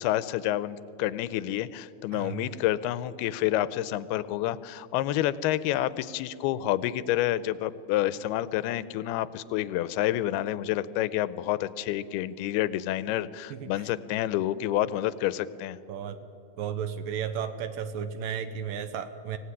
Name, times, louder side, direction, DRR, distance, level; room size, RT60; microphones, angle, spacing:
voice 1, 0.0-15.8, left 13 dB, 85° left, 17 dB, 2.6 m, -29 dB
voice 2, 2.1-2.5 13.5-13.7 15.9-16.2 16.6-19.4, right 8 dB, 75° right, 11 dB, 2.3 m, -34 dB
24.5 x 16.5 x 9.7 m, 2.9 s
omnidirectional pair, 4.4 m